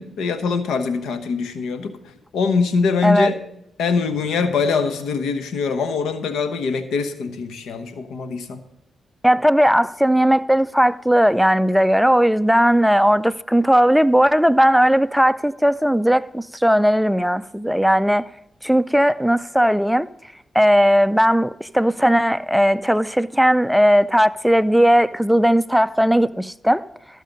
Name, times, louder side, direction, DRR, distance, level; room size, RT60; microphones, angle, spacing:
voice 1, 0.0-2.0 2.3-3.4 3.8-8.6, left 5 dB, 80° left, 1.0 m, -23 dB
voice 2, 9.2-18.2 18.6-20.1 20.5-26.9, equal, ahead, 0.4 m, -17 dB
14.0 x 6.5 x 5.2 m
supercardioid pair, 50°, 0 cm